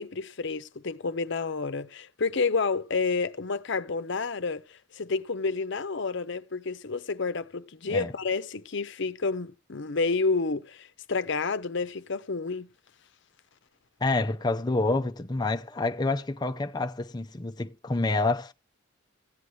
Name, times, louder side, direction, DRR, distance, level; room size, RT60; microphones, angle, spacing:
voice 1, 0.0-12.7, left 4 dB, 65° left, 0.8 m, -30 dB
voice 2, 14.0-18.5, left 2 dB, 20° left, 0.6 m, -28 dB
16.0 x 9.5 x 3.2 m
head